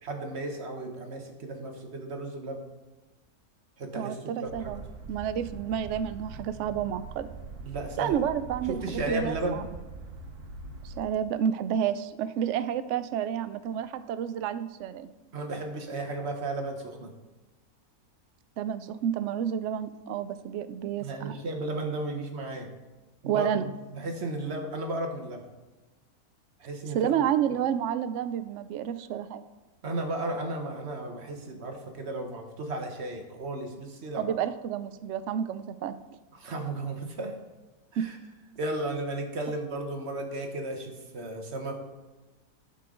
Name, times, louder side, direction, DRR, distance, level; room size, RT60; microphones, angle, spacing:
voice 1, 0.0-2.6 3.8-4.7 7.6-8.2 8.7-9.6 15.3-17.1 21.0-22.7 23.2-25.5 26.6-27.1 29.8-34.2 36.3-37.4 37.9-38.2 38.6-41.7, right 2 dB, 50° right, 4 dB, 1.3 m, -34 dB
voice 2, 4.0-4.8 5.1-7.3 8.0-9.7 10.8-15.1 18.6-21.4 23.2-23.7 26.9-29.4 34.1-36.0 38.0-38.1, right 9 dB, 70° right, 13 dB, 0.7 m, -30 dB
sound 1, 4.5-11.0, right 3 dB, 90° right, 1.6 m, -43 dB
11.5 x 5.7 x 3.7 m, 1.2 s
omnidirectional pair, 1.6 m